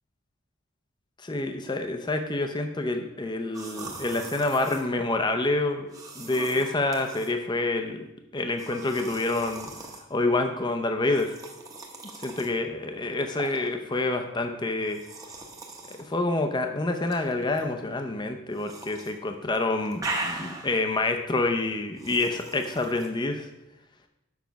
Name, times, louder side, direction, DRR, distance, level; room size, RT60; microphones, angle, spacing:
voice 1, 1.2-5.9 6.2-8.1 8.3-9.7 10.1-11.3 12.2-15.0 15.9-23.5, left 2 dB, 20° left, 6 dB, 0.5 m, -27 dB
sound 1, 3.5-4.9 5.9-7.3 8.6-10.0 11.1-12.5 13.4-13.7 14.9-16.1 17.0-17.6 18.6-19.1 19.4-20.9 22.0-23.1, right 2 dB, 15° right, 0.9 m, -39 dB
7.1 x 5.2 x 5.7 m, 0.91 s
head